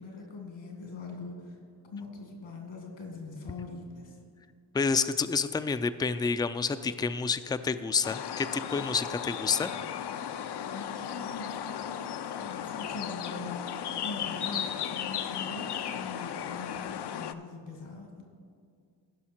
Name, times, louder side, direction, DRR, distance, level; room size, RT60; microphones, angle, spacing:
voice 1, 0.0-1.6 1.9-4.2 10.6-18.2, left 3 dB, 75° left, 2 dB, 2.2 m, -42 dB
voice 2, 4.7-9.7, left 5 dB, 10° left, 11 dB, 0.4 m, -29 dB
sound 1, 8.0-17.3, left 9 dB, 60° left, 0.6 m, -35 dB
15.5 x 5.6 x 4.4 m, 2.2 s
cardioid pair, 50°, 46 cm